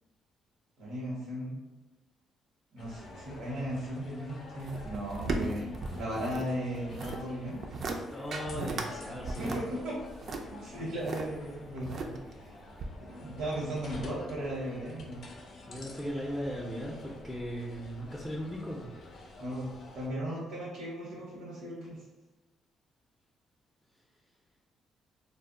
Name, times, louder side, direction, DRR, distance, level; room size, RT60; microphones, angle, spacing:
voice 1, 0.8-1.6 2.7-7.6 9.4-10.0 10.5-12.5 13.1-15.2 19.4-22.0, equal, 80° right, -6 dB, 0.7 m, -37 dB
sound 1, 2.8-20.1, left 2 dB, 65° left, 0.5 m, -49 dB
sound 2, 4.6-6.5 6.7-7.2 7.6-8.0 8.3-8.9 9.2-11.2 11.8-12.4 12.8-12.9, right 3 dB, 55° right, 0.3 m, -36 dB
voice 2, 8.1-9.6 15.7-18.9, equal, 10° left, -3 dB, 0.4 m, -37 dB
2.1 x 2.0 x 3.6 m, 1.1 s
cardioid pair, 90°, 0 cm